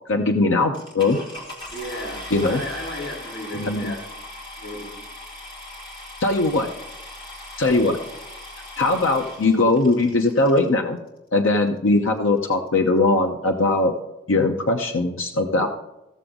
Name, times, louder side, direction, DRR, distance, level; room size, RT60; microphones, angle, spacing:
voice 1, 0.1-1.2 2.3-2.6 3.5-3.9 6.2-6.7 7.6-8.0 8.8-11.0 11.3-13.9 14.3-15.7, left 2 dB, 90° left, 3 dB, 0.8 m, -20 dB
sound 1, 0.7-10.7 11.5-11.6 12.1-12.2 12.4-12.7, left 1 dB, 25° left, 2.2 m, -39 dB
voice 2, 1.7-4.0 4.6-4.9, left 1 dB, 60° left, -4 dB, 3.3 m, -34 dB
15.0 x 7.0 x 3.8 m, 0.93 s
head